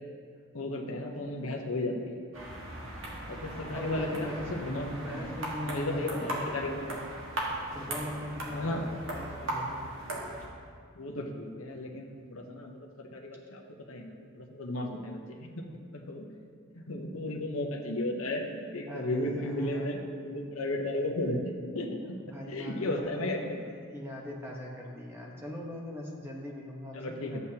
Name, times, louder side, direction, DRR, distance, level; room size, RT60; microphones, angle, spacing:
voice 1, 0.5-2.2 3.3-5.3 5.6-6.9 8.5-8.8 11.0-13.6 13.9-15.6 15.9-16.2 16.7-22.2 22.5-23.6 26.9-27.4, left 1 dB, 70° left, 2 dB, 0.9 m, -34 dB
sound 1, 2.3-10.5, right 1 dB, 60° right, 1.7 m, -38 dB
voice 2, 3.7-4.5 4.8-7.0 7.7-9.9 18.9-20.0 22.0-27.4, left 1 dB, 10° right, -2 dB, 1.1 m, -41 dB
12.5 x 8.2 x 2.9 m, 2.1 s
head